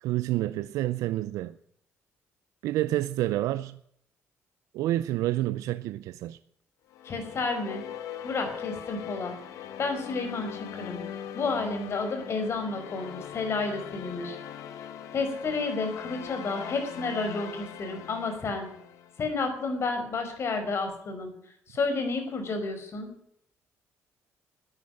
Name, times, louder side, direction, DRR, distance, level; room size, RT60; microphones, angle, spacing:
voice 1, 0.0-1.5 2.6-3.8 4.7-6.4, right 15 dB, 85° right, 0.5 m, -28 dB
sound 1, 6.9-19.3, left 9 dB, 80° left, 1.5 m, -41 dB
voice 2, 7.0-7.8 8.2-9.3 9.8-11.0 11.3-14.4 15.1-18.7 19.2-21.3 21.7-23.1, left 3 dB, 55° left, 5.0 m, -31 dB
13.0 x 10.5 x 10.0 m
cardioid pair, 80°, 5 cm